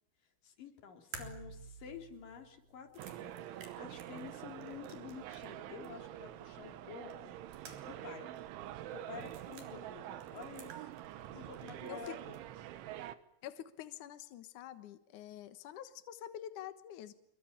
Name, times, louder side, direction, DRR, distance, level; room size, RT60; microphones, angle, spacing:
voice 1, 0.4-7.4 7.8-8.3 8.9-10.9 11.3-12.4, left 7 dB, 45° left, 4 dB, 4.6 m, -50 dB
sound 1, 1.1-5.6 5.8-5.9 7.1-8.1 8.4-8.5 9.1-9.7 10.2-11.3 11.5-12.4, right 5 dB, 50° right, 5.0 m, -52 dB
sound 2, 3.0-13.2, right 12 dB, 80° right, 3.6 m, -46 dB
voice 2, 13.4-17.1, left 11 dB, 75° left, 11 dB, 1.8 m, -47 dB
27.0 x 23.0 x 8.8 m, 0.72 s
omnidirectional pair, 5.5 m